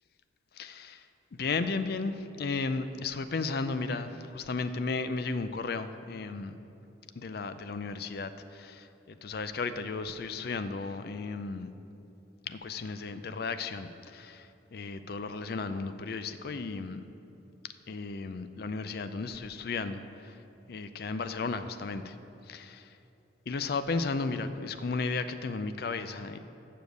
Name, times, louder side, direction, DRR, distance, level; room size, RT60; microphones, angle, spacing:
voice 1, 0.5-6.5 7.2-11.7 12.4-17.0 17.6-20.4 20.7-22.2 22.4-23.0 23.5-26.4, left 4 dB, 55° left, 11 dB, 0.4 m, -34 dB
7.2 x 6.6 x 7.8 m, 2.8 s
head